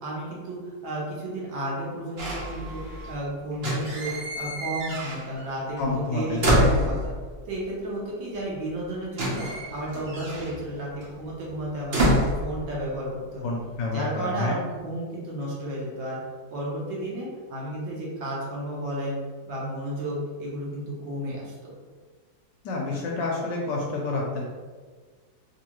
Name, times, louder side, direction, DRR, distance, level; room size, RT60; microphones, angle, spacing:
voice 1, 0.0-7.1 7.5-12.0 12.4-13.5 13.9-16.2 16.5-19.2 19.5-21.7, right 1 dB, 65° right, -5 dB, 1.6 m, -32 dB
sound 1, 2.2-3.2 3.5-5.5 5.8-7.4 8.4-8.5 8.6-13.1 13.4-13.9, equal, 85° right, 0.5 m, -27 dB
voice 2, 5.8-6.7 13.4-14.6 22.6-24.5, left 3 dB, 70° left, -2 dB, 1.1 m, -29 dB
3.8 x 2.7 x 2.9 m, 1.5 s
omnidirectional pair, 2.2 m